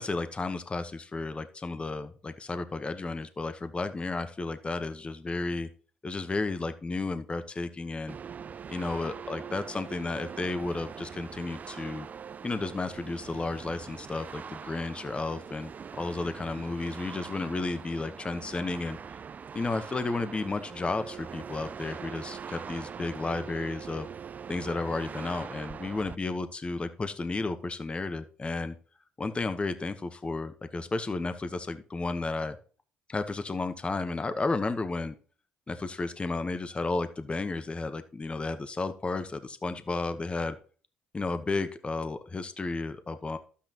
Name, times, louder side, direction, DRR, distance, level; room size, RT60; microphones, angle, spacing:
voice 1, 0.0-5.7 6.0-8.2 8.7-12.1 12.4-19.0 19.5-24.1 24.5-28.8 29.2-32.6 33.1-35.1 35.7-40.6 41.1-43.4, left 3 dB, 25° left, 10 dB, 1.0 m, -33 dB
sound 1, 8.1-26.2, right 7 dB, 40° right, 0.4 m, -43 dB
12.0 x 8.5 x 3.0 m, 0.41 s
supercardioid pair, 60°, 4 cm